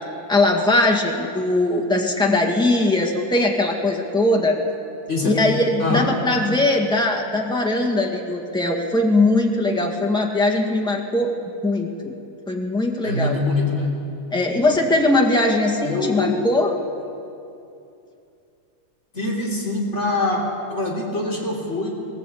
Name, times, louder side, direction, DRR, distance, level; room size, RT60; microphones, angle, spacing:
voice 1, 0.3-4.6 5.2-11.3 11.6-12.1 12.5-13.4 14.3-16.7, left 2 dB, 5° left, 0 dB, 0.7 m, -20 dB
voice 2, 5.1-5.5 5.8-6.1 13.0-14.0 15.8-16.4 19.1-21.9, left 2 dB, 20° left, -2 dB, 3.6 m, -24 dB
19.0 x 18.5 x 8.5 m, 2.7 s
omnidirectional pair, 3.4 m